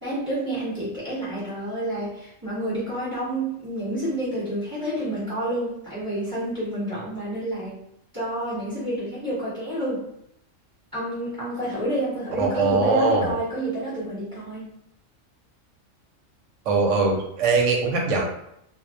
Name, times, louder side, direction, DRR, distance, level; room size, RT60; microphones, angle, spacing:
voice 1, 0.0-7.8 8.1-10.0 10.9-14.7, right 1 dB, 20° right, -10 dB, 0.9 m, -29 dB
voice 2, 12.4-13.3 16.7-18.3, right 3 dB, 70° right, 0 dB, 0.9 m, -21 dB
2.3 x 2.0 x 2.6 m, 0.74 s
omnidirectional pair, 1.4 m